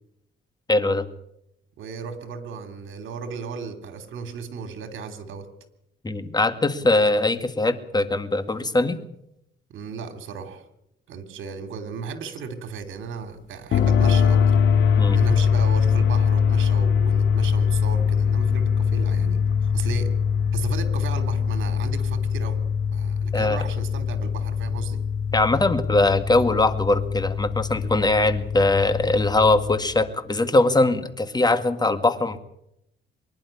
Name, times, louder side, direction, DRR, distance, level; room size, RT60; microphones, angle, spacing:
voice 1, 0.7-1.1 6.0-9.0 15.0-15.2 23.3-23.6 25.3-32.4, left 2 dB, 20° left, 10 dB, 2.0 m, -21 dB
voice 2, 1.8-5.5 9.7-10.6 11.1-14.5 15.1-20.1 20.5-22.6 22.9-25.0, right 5 dB, 80° right, 9 dB, 3.0 m, -35 dB
sound 1, 13.7-29.8, left 7 dB, 70° left, 3.3 m, -22 dB
24.0 x 11.0 x 9.9 m, 0.79 s
cardioid pair, 90°, 20 cm